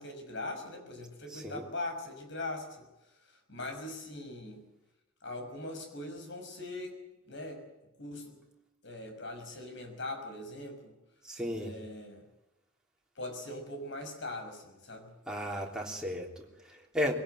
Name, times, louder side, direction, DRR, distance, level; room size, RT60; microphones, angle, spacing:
voice 1, 0.0-2.8 3.3-4.7 5.2-7.0 7.3-7.6 8.0-8.4 8.8-10.9 11.6-12.2 13.2-15.1, left 2 dB, 60° left, 6 dB, 6.1 m, -41 dB
voice 2, 1.3-1.6 11.2-11.7 15.3-17.1, equal, 5° right, -1 dB, 3.4 m, -35 dB
22.5 x 17.0 x 9.2 m, 0.98 s
head